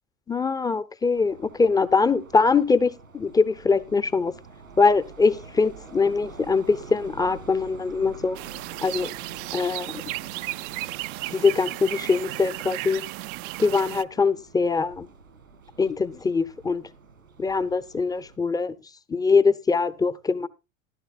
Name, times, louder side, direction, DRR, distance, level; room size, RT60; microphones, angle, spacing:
voice 1, 0.3-4.3 4.8-8.4 8.8-9.1 9.5-10.0 11.3-13.1 13.6-15.1 15.8-16.9 17.4-18.7 19.1-20.5, left 4 dB, 10° left, 0.7 m, -23 dB
sound 1, 1.1-18.4, right 4 dB, 85° right, 2.3 m, -47 dB
sound 2, 8.3-14.0, right 19 dB, 40° right, 0.5 m, -34 dB
14.5 x 11.5 x 2.3 m
figure-of-eight pair, 85°, 40 cm